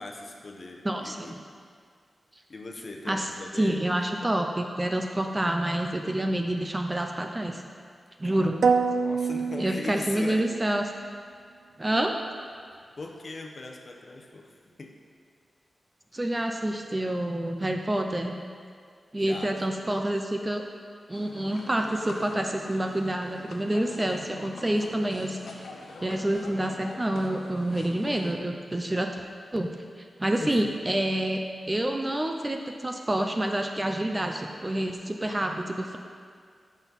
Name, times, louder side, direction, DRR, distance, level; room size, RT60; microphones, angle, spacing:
voice 1, 0.0-1.4 2.5-3.8 8.2-8.5 8.9-10.5 13.0-14.9 19.2-19.8 30.2-30.7, left 2 dB, 40° left, 2 dB, 0.9 m, -40 dB
voice 2, 0.8-1.3 3.1-3.3 3.6-7.6 8.2-8.6 9.6-10.8 11.8-12.1 16.1-18.4 19.1-20.6 21.1-25.6 26.0-29.2 29.5-29.7 30.0-36.0, right 1 dB, 15° right, 3 dB, 0.5 m, -28 dB
sound 1, 8.6-10.6, right 5 dB, 70° right, 0.5 m, -26 dB
sound 2, 21.1-28.3, left 3 dB, 85° left, 1.0 m, -45 dB
14.5 x 6.2 x 4.1 m, 2.1 s
wide cardioid pair, 170°, 0 cm